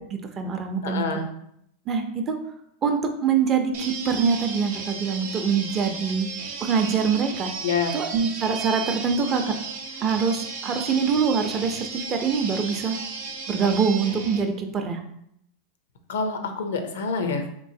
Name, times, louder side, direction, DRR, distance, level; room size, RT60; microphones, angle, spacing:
voice 1, 0.1-1.0 1.9-2.4 2.8-6.3 6.6-7.5 7.9-9.6 10.0-13.0 13.5-15.0, right 6 dB, 30° right, 5 dB, 0.5 m, -24 dB
voice 2, 0.8-1.3 7.6-7.9 16.1-17.5, left 4 dB, 90° left, 6 dB, 0.5 m, -27 dB
sound 1, 3.7-14.4, right 5 dB, 75° right, 0.6 m, -35 dB
3.4 x 3.0 x 2.7 m, 0.74 s
supercardioid pair, 130°, 0 cm